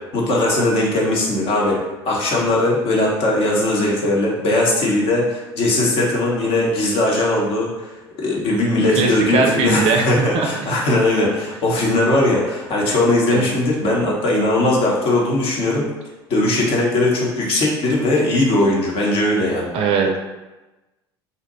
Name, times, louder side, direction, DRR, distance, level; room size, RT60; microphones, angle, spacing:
voice 1, 0.1-7.9 8.2-15.9 16.3-19.7, left 1 dB, 45° left, -3 dB, 0.9 m, -19 dB
voice 2, 9.0-10.5 13.3-13.5 19.7-20.2, right 4 dB, 45° right, 3 dB, 0.5 m, -19 dB
2.7 x 2.2 x 3.9 m, 1.1 s
figure-of-eight pair, 65°, 14 cm